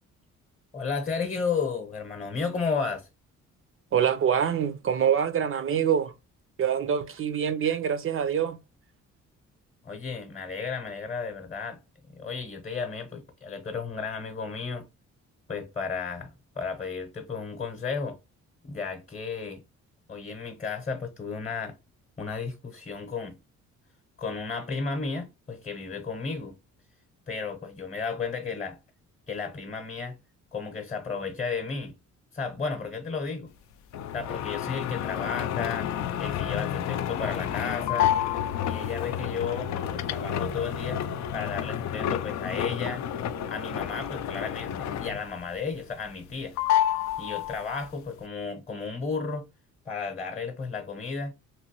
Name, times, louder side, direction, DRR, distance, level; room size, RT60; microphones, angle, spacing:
voice 1, 0.7-3.1 9.8-11.8 12.1-14.9 15.5-18.2 18.6-19.6 20.1-21.8 22.2-23.4 24.2-26.6 27.3-28.8 29.3-30.2 30.5-31.9 32.3-33.5 34.1-35.9 36.2-38.1 38.7-41.0 41.3-43.0 43.5-46.6 47.2-49.4 49.9-51.3, left 5 dB, 25° left, 0.8 m, -33 dB
voice 2, 3.9-6.1 6.6-8.6, right 8 dB, 45° right, 0.5 m, -25 dB
sound 1, 33.9-45.4 45.7-46.3 46.6-47.9, left 10 dB, 65° left, 0.4 m, -30 dB
3.0 x 2.6 x 2.9 m
cardioid pair, 90°, 30 cm